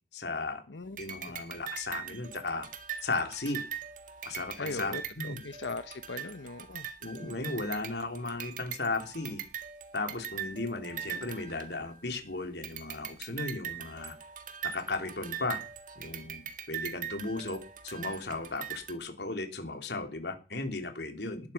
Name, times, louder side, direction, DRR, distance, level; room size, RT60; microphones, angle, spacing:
voice 1, 0.1-0.6 1.0-2.7 3.0-3.6 4.2-5.4 7.0-9.4 9.9-14.1 14.7-15.6 16.0-17.6 17.8-21.4, left 3 dB, 70° left, 3.4 m, -35 dB
sound 1, 1.0-12.2 12.6-18.9, right 9 dB, 45° right, 1.8 m, -41 dB
voice 2, 4.6-6.9, left 3 dB, 90° left, 1.0 m, -39 dB
19.5 x 11.5 x 5.8 m
head